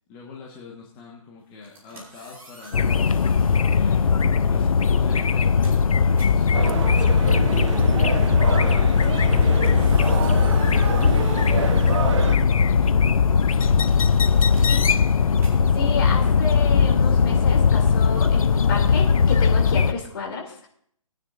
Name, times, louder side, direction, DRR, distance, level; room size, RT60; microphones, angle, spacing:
voice 1, 0.1-4.1 4.5-13.8 14.4-14.9, left 4 dB, 20° left, -2 dB, 1.4 m, -43 dB
sound 1, 1.5-3.9 4.7-4.9 5.3-12.8 13.1-17.7, right 1 dB, 10° right, 4.4 m, -50 dB
sound 2, 2.7-19.9, left 5 dB, 75° left, 0.7 m, -19 dB
sound 3, 6.5-12.4, right 6 dB, 55° right, 1.0 m, -28 dB
voice 2, 15.7-20.7, left 4 dB, 40° left, 0 dB, 2.8 m, -31 dB
22.0 x 10.0 x 2.6 m, 0.63 s
hypercardioid pair, 150°, 18 cm